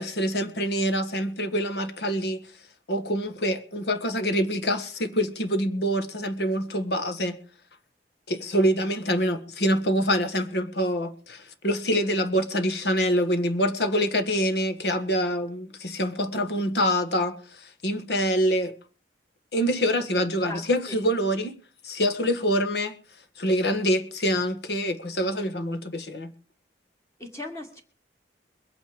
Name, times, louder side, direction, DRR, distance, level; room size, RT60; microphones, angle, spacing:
voice 1, 0.0-2.4 2.9-7.4 8.3-18.7 19.5-21.6 21.8-22.9 23.4-26.3, equal, 70° left, 1.5 m, -25 dB
voice 2, 20.5-21.0 27.2-27.8, left 1 dB, 15° left, 1.8 m, -38 dB
22.0 x 9.0 x 5.0 m
head